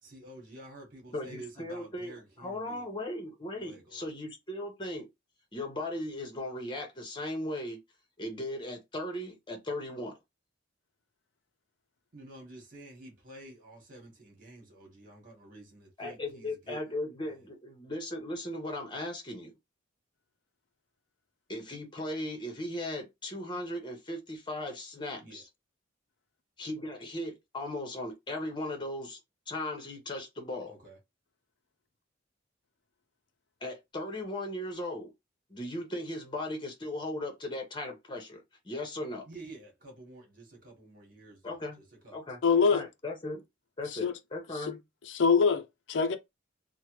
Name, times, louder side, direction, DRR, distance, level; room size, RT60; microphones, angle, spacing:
voice 1, 0.0-2.9 3.6-4.1 12.1-16.8 17.2-17.5 25.2-25.4 30.7-31.0 39.2-42.7, right 2 dB, 45° right, 1.4 m, -50 dB
voice 2, 1.1-5.1 5.5-7.8 8.2-10.2 16.0-19.5 21.5-25.4 26.6-29.2 29.5-30.7 33.6-35.1 35.5-39.2 41.4-41.8 42.1-42.4 42.7-43.4 43.8-44.8, left 1 dB, 25° left, 0.9 m, -37 dB
voice 3, 42.4-42.9 43.9-44.2 44.5-44.7 45.0-46.2, left 5 dB, 70° left, 0.5 m, -25 dB
3.1 x 2.1 x 3.1 m
head